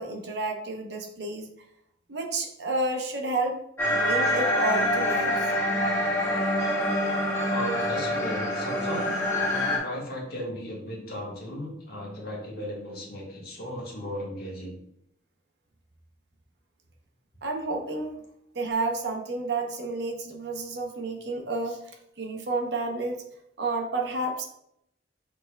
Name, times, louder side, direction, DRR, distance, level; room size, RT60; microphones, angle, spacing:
voice 1, 0.0-1.5 2.1-3.6 3.9-5.4 17.4-18.2 18.5-21.8 22.2-23.2 23.6-24.4, right 2 dB, 65° right, 3 dB, 0.7 m, -30 dB
sound 1, 3.8-9.8, left 1 dB, 15° left, 0.9 m, -26 dB
voice 2, 7.4-14.7, equal, 55° left, -3 dB, 1.4 m, -36 dB
6.7 x 3.3 x 2.2 m, 0.75 s
head